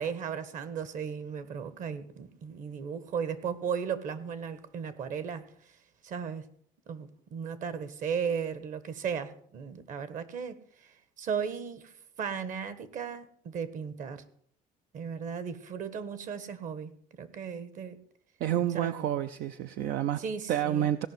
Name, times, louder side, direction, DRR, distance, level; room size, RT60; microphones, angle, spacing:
voice 1, 0.0-5.5 6.0-6.5 6.9-10.6 11.2-11.9 12.2-14.2 14.9-18.0 18.7-19.1 20.2-20.9, right 7 dB, 55° right, 1.5 m, -36 dB
voice 2, 18.4-20.2 20.5-21.1, right 11 dB, 75° right, 0.6 m, -29 dB
17.5 x 5.8 x 7.9 m
cardioid pair, 125°, 16 cm